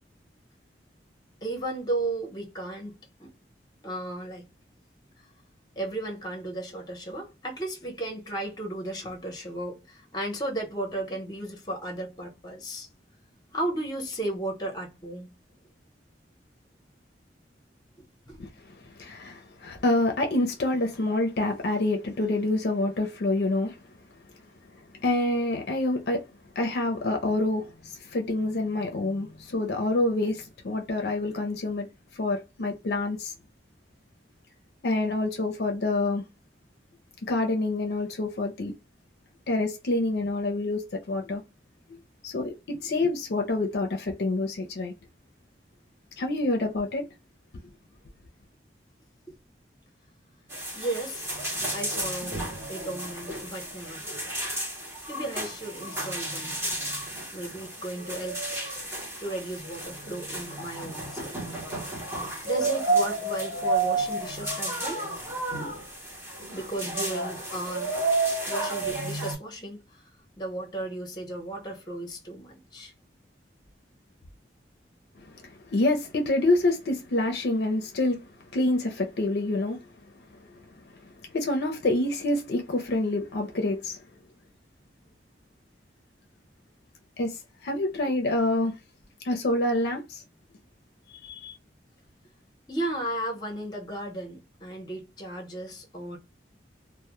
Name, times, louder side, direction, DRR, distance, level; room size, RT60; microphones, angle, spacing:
voice 1, 1.4-3.3 3.8-4.5 5.8-12.9 13.5-15.4 18.0-18.4 49.3-49.4 50.7-52.4 52.7-54.4 55.1-56.7 57.3-58.7 59.2-61.3 62.4-65.0 66.5-68.2 68.4-69.8 70.4-72.9 92.7-96.2, right 1 dB, 25° left, 0.8 m, -35 dB
voice 2, 18.9-23.8 25.0-26.2 26.6-31.9 32.2-33.3 34.8-36.2 37.2-38.7 39.5-41.4 42.2-44.9 46.2-47.1 75.4-78.2 78.5-79.8 80.4-80.5 81.3-84.0 87.2-88.7 89.2-90.2 91.2-91.6, left 2 dB, 65° left, 0.5 m, -27 dB
sound 1, 50.5-69.3, right 2 dB, 15° right, 0.8 m, -31 dB
2.1 x 2.0 x 2.9 m
head